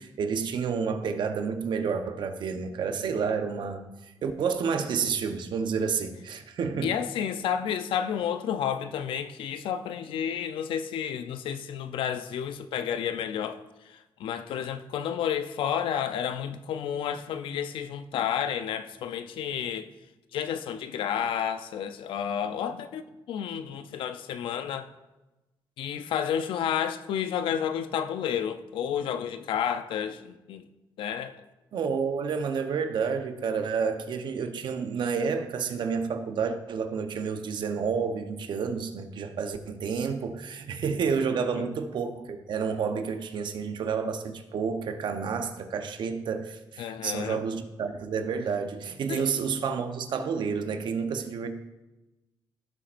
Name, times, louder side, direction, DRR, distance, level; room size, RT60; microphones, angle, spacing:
voice 1, 0.0-3.8 4.2-6.9 31.7-51.5, right 6 dB, 65° right, 0.9 m, -30 dB
voice 2, 6.8-19.9 20.3-24.9 25.8-30.7 31.0-31.4 41.5-41.6 46.8-47.4 49.1-49.3, left 8 dB, 85° left, 0.6 m, -31 dB
16.0 x 7.2 x 2.6 m
cardioid pair, 110°, 8 cm